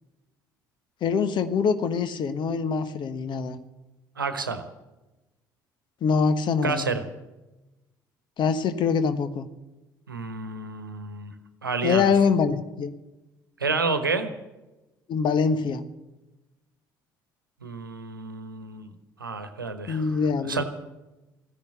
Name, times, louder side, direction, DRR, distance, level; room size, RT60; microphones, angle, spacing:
voice 1, 1.0-3.6 6.0-6.9 8.4-9.5 11.8-12.9 15.1-15.8 19.9-20.6, left 5 dB, 45° left, 11 dB, 1.3 m, -24 dB
voice 2, 4.2-4.6 6.6-7.0 10.1-11.3 11.6-12.1 13.6-14.3 17.6-18.9 19.2-20.1 20.4-20.6, right 4 dB, 85° right, 10 dB, 1.1 m, -29 dB
14.5 x 10.5 x 8.3 m, 1.0 s
figure-of-eight pair, 55°, 11 cm